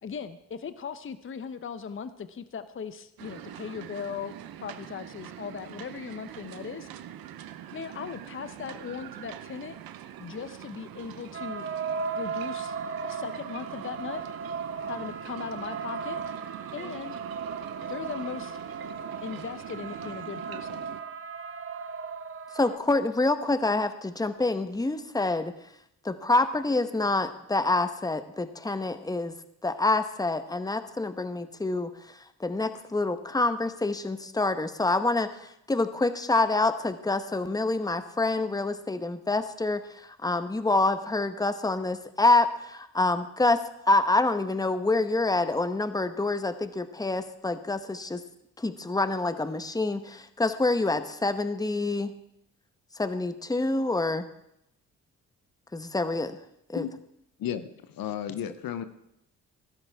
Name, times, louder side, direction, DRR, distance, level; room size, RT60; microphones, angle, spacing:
voice 1, 0.0-4.3 4.6-6.9 7.7-9.8 10.2-11.7 12.2-12.8 13.0-14.2 14.9-16.2 16.7-17.2 17.9-18.6 19.2-20.8, left 6 dB, 35° left, 12 dB, 0.8 m, -38 dB
sound 1, 3.2-21.0, right 11 dB, 75° right, 0.9 m, -43 dB
sound 2, 11.3-22.8, right 5 dB, 35° right, 1.0 m, -36 dB
voice 2, 22.5-25.5 26.0-29.3 29.6-31.9 32.4-48.2 48.6-52.1 53.0-54.2 55.7-56.4 56.7-56.9, left 2 dB, 10° left, 11 dB, 1.0 m, -27 dB
voice 3, 57.4-58.8, left 10 dB, 70° left, 11 dB, 0.9 m, -33 dB
15.5 x 13.0 x 3.5 m, 0.78 s
supercardioid pair, 55°, 36 cm